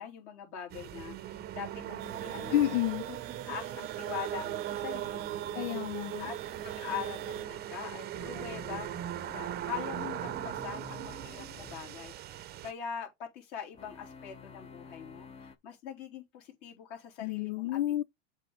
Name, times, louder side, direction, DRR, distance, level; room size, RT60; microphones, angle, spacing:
voice 1, 0.0-2.6 3.1-3.2 3.5-5.6 6.2-6.4 6.6-8.9 9.3-17.8, left 8 dB, 55° left, 3.4 m, -43 dB
sound 1, 0.7-12.7, right 12 dB, 30° right, 0.7 m, -39 dB
sound 2, 2.0-7.5, right 21 dB, 60° right, 0.5 m, -48 dB
voice 2, 2.5-3.0 5.5-6.3 17.2-18.0, left 14 dB, 80° left, 0.5 m, -30 dB
sound 3, 8.1-11.8 13.7-15.6, left 6 dB, 20° left, 0.7 m, -50 dB
7.4 x 3.7 x 5.3 m
supercardioid pair, 130°, 34 cm